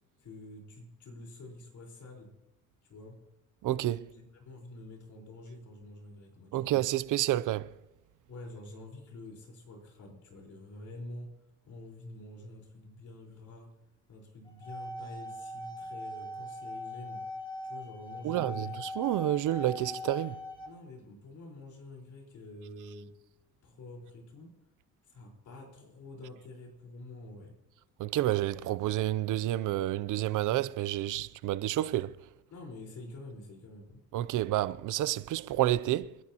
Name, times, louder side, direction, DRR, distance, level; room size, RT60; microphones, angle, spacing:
voice 1, 0.2-2.3 2.8-3.1 4.1-6.8 8.3-11.3 11.7-13.7 14.1-17.2 17.6-18.7 20.6-23.1 23.6-24.5 25.1-27.5 32.5-34.0, left 2 dB, 55° left, 4.7 m, -47 dB
voice 2, 3.6-4.1 6.5-7.7 18.2-20.4 28.0-32.1 34.1-36.2, right 14 dB, 60° right, 0.6 m, -29 dB
sound 1, 14.4-20.7, left 2 dB, 15° left, 2.5 m, -41 dB
29.0 x 10.5 x 3.0 m
cardioid pair, 100°, 35 cm